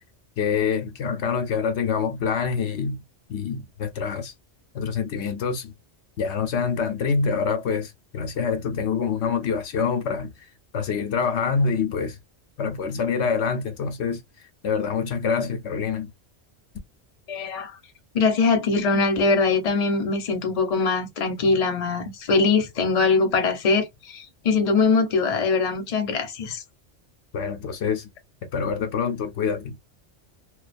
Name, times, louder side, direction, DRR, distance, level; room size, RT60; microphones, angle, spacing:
voice 1, 0.4-3.0 3.3-4.3 4.7-5.7 6.2-10.5 10.7-12.2 12.6-14.2 14.6-16.1 27.3-28.1 28.5-29.8, left 5 dB, 75° left, 0.9 m, -26 dB
voice 2, 17.3-17.7 18.1-26.6, left 4 dB, 40° left, 0.7 m, -22 dB
2.4 x 2.3 x 2.4 m
omnidirectional pair, 1.2 m